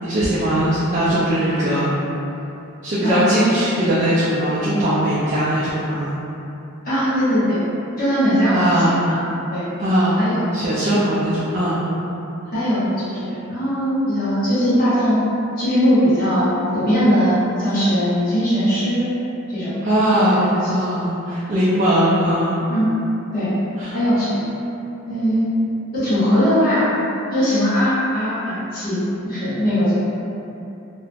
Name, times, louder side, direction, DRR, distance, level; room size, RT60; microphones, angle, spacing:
voice 1, 0.0-1.9 2.8-6.1 8.5-9.0 9.8-10.2 10.5-11.8 19.8-22.6 23.8-24.0, right 1 dB, 35° right, -10 dB, 0.3 m, -20 dB
voice 2, 3.0-3.4 6.8-7.6 8.0-9.2 9.5-9.7 10.2-10.6 12.5-15.2 15.6-19.1 19.5-19.7 20.1-20.8 22.7-22.9 23.3-23.5 23.9-24.4 25.0-25.6 25.9-26.9 27.3-29.0 29.2-29.9, equal, 40° left, -13 dB, 1.0 m, -20 dB
2.3 x 2.0 x 3.2 m, 2.9 s
head